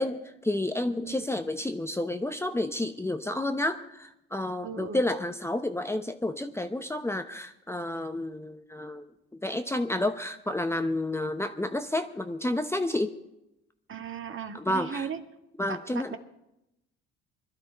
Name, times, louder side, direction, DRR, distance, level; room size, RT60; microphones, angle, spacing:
voice 1, 0.0-9.1 9.3-13.2 14.5-15.1 15.6-16.2, left 1 dB, 10° left, 7 dB, 0.9 m, -30 dB
voice 2, 4.6-5.0 13.9-15.2 15.7-16.2, right 6 dB, 40° right, 6 dB, 1.9 m, -37 dB
21.0 x 12.5 x 4.5 m, 0.87 s
supercardioid pair, 80°, 31 cm